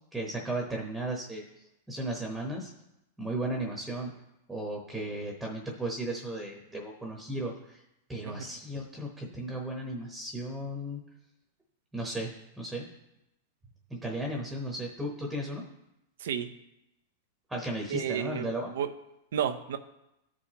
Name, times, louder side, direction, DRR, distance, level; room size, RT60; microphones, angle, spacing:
voice 1, 0.1-1.5 1.9-2.7 3.2-4.1 4.5-7.8 8.1-11.0 11.9-12.9 13.9-15.6 17.5-18.7, right 1 dB, 5° right, -1 dB, 1.0 m, -35 dB
voice 2, 16.2-16.5 17.9-18.9 19.3-19.8, right 9 dB, 80° right, 8 dB, 0.6 m, -32 dB
14.0 x 4.8 x 2.9 m, 0.88 s
supercardioid pair, 150°, 0 cm